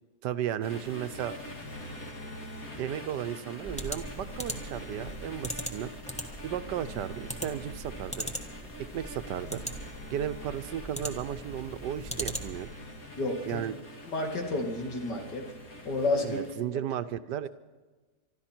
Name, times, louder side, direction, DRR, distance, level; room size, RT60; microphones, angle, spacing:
voice 1, 0.2-1.4 2.8-5.9 6.4-8.3 8.8-9.6 10.1-12.7 13.4-13.7 16.2-17.5, right 10 dB, 80° right, 12 dB, 1.3 m, -34 dB
sound 1, 0.6-16.6, left 1 dB, 55° left, 2.6 m, -44 dB
sound 2, 3.6-12.8, right 1 dB, 5° left, 1.1 m, -40 dB
voice 2, 13.2-13.6 14.1-15.4 15.8-16.4, left 2 dB, 75° left, 2 dB, 2.7 m, -30 dB
24.5 x 12.5 x 4.4 m, 1.3 s
omnidirectional pair, 1.9 m